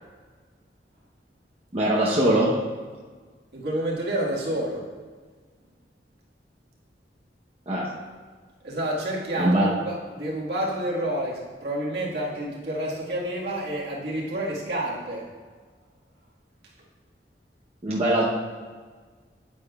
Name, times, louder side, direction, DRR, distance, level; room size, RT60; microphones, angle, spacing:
voice 1, 1.7-2.6 7.7-7.9 9.4-9.7 17.8-18.3, right 1 dB, 35° right, -5 dB, 0.9 m, -21 dB
voice 2, 3.5-4.8 8.6-15.3, right 1 dB, 65° right, -4 dB, 1.7 m, -29 dB
9.1 x 9.0 x 2.4 m, 1.5 s
head